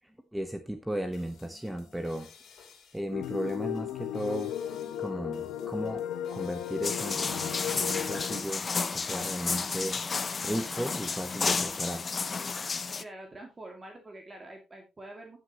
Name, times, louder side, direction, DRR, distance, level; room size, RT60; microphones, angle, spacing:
voice 1, 0.3-2.3 2.9-4.5 4.8-6.0 6.3-10.0 10.4-12.0, right 1 dB, 5° right, 7 dB, 1.2 m, -35 dB
sound 1, 0.9-7.3, left 6 dB, 65° left, 2.9 m, -57 dB
sound 2, 3.1-8.4, left 10 dB, 90° left, 1.0 m, -35 dB
sound 3, 6.8-13.0, left 4 dB, 35° left, 0.7 m, -32 dB
voice 2, 13.0-15.4, right 1 dB, 25° right, 2 dB, 2.3 m, -46 dB
13.0 x 6.4 x 3.0 m, 0.25 s
cardioid pair, 90°, 0 cm